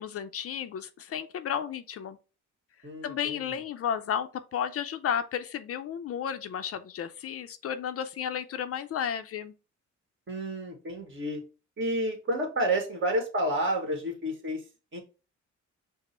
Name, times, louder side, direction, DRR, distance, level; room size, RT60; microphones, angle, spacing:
voice 1, 0.0-2.2 3.0-9.5, left 8 dB, 50° left, 0.4 m, -33 dB
voice 2, 2.8-3.4 10.3-11.4 11.8-14.6 14.9-15.0, right 1 dB, 40° right, 1.5 m, -30 dB
5.1 x 2.0 x 4.2 m
cardioid pair, 90°, 30 cm